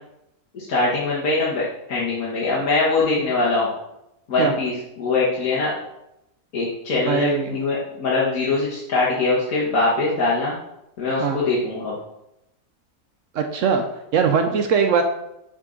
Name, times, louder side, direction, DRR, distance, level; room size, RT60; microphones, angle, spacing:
voice 1, 0.5-3.7 4.3-5.7 6.5-10.5 11.0-11.9, left 3 dB, 70° left, -7 dB, 1.6 m, -22 dB
voice 2, 7.1-7.6 11.2-11.4 13.3-13.8 14.1-15.0, right 6 dB, 65° right, 5 dB, 0.8 m, -20 dB
7.5 x 3.7 x 3.7 m, 0.86 s
omnidirectional pair, 1.6 m